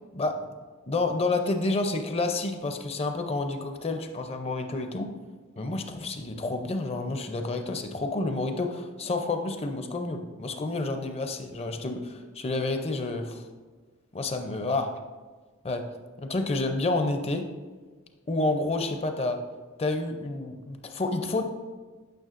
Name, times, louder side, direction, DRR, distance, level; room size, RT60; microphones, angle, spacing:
voice 1, 0.9-5.1 5.6-13.5 14.1-14.9 15.6-15.8 16.2-17.5 18.3-19.4 19.8-21.4, left 2 dB, 30° left, 6 dB, 0.5 m, -29 dB
9.1 x 6.0 x 2.5 m, 1.4 s
head